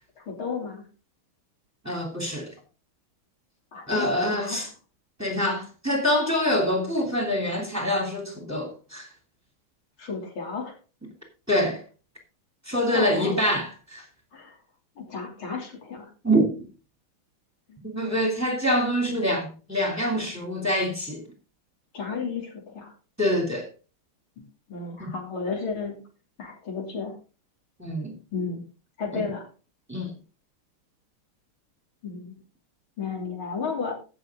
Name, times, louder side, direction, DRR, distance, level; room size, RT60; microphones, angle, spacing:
voice 1, 0.2-0.9 3.7-4.7 10.0-10.8 12.9-13.5 14.3-14.6 15.0-16.1 17.7-17.8 21.9-22.9 24.4-26.0 26.4-27.2 28.3-28.6 29.0-29.5 32.0-32.3 33.0-33.9, left 5 dB, 75° left, 3.9 m, -33 dB
voice 2, 1.8-2.5 3.9-4.7 5.2-9.1 11.5-11.8 12.7-14.0 16.2-16.5 17.8-21.2 23.2-23.7 25.0-25.1 27.8-28.2 29.1-29.2 29.9-30.1, equal, 5° right, 2.8 m, -25 dB
16.5 x 6.8 x 3.7 m
omnidirectional pair, 2.3 m